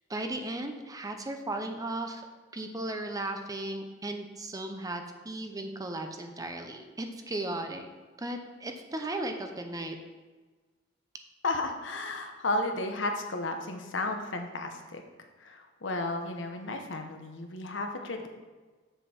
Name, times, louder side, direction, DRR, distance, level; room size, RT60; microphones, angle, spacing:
voice 1, 0.1-2.2 2.5-7.9 8.2-10.0, right 1 dB, 20° right, 5 dB, 0.7 m, -36 dB
voice 2, 11.4-15.0 15.4-18.3, left 2 dB, 70° left, 5 dB, 1.0 m, -33 dB
7.5 x 7.0 x 4.3 m, 1.3 s
head